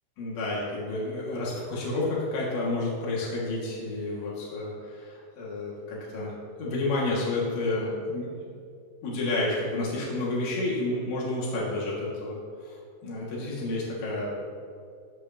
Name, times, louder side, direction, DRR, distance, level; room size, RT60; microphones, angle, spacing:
voice 1, 0.2-6.3 6.6-8.5 9.0-14.3, left 2 dB, 85° left, -6 dB, 4.6 m, -30 dB
21.5 x 8.2 x 3.0 m, 2.3 s
omnidirectional pair, 4.9 m